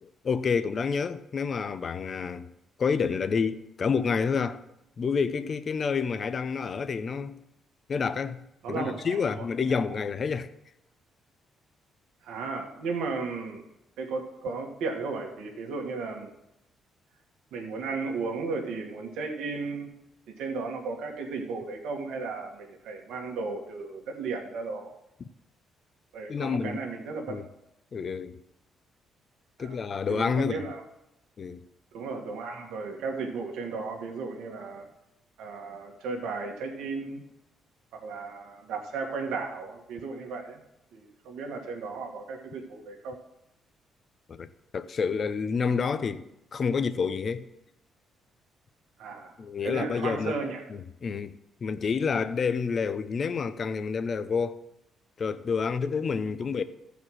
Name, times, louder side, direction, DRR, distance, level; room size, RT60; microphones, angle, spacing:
voice 1, 0.0-2.5 2.8-4.6 5.0-7.4 7.9-10.5 26.3-26.8 27.3-27.5 27.9-28.4 29.6-30.6 31.4-31.6 44.3-46.2 46.5-47.4 49.4-50.4 50.7-51.3 51.6-54.6 55.2-56.6, left 5 dB, 45° left, 0.6 m, -29 dB
voice 2, 8.6-9.5 12.2-13.6 14.0-16.3 17.5-19.9 20.3-24.9 26.1-27.4 29.6-29.8 30.1-30.8 31.9-34.9 35.4-37.2 37.9-40.6 40.9-43.2 49.0-50.6, right 4 dB, 85° right, 1.8 m, -35 dB
14.5 x 5.0 x 6.3 m
cardioid pair, 90°, 0 cm